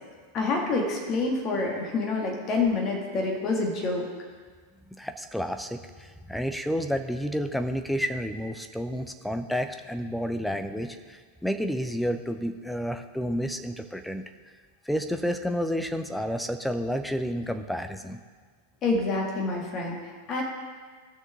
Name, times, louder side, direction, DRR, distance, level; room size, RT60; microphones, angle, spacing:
voice 1, 0.3-4.1 18.8-20.4, left 3 dB, 30° left, 0 dB, 2.1 m, -27 dB
voice 2, 4.9-14.2 14.9-18.2, equal, ahead, 7 dB, 0.7 m, -30 dB
18.0 x 6.3 x 3.8 m, 1.6 s
figure-of-eight pair, 90°, 0 cm